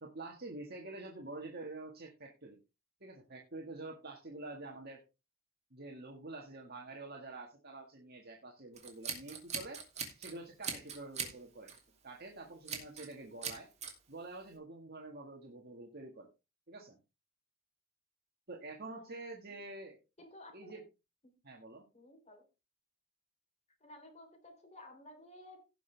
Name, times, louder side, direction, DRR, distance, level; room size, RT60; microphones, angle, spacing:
voice 1, 0.0-2.6 3.0-5.0 5.7-9.8 10.2-11.7 12.0-13.7 14.1-16.3 16.7-17.0 18.5-20.0 20.5-20.8 21.4-21.9, right 2 dB, 50° right, 1 dB, 1.8 m, -47 dB
Scissors, 8.8-10.3 10.6-11.4 11.7-11.9 12.7-13.1 13.4-13.9, right 6 dB, 35° right, 2.7 m, -40 dB
voice 2, 20.2-20.8 21.9-22.4 23.8-25.6, left 1 dB, 35° left, 5 dB, 3.3 m, -54 dB
17.5 x 6.1 x 3.4 m, 0.27 s
head